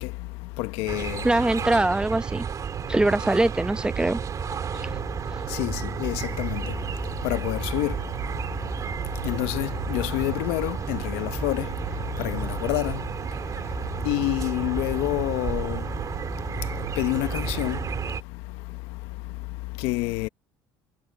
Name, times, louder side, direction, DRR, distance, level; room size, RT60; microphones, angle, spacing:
voice 1, 0.0-1.3 4.9-20.3, left 20 dB, 80° left, 1.1 m, -30 dB
sound 1, 0.9-18.2, right 7 dB, 35° right, 2.9 m, -32 dB
voice 2, 1.2-2.5 2.9-4.2 4.7-4.9, right 2 dB, 10° right, 0.8 m, -23 dB
cardioid pair, 115°, 10 cm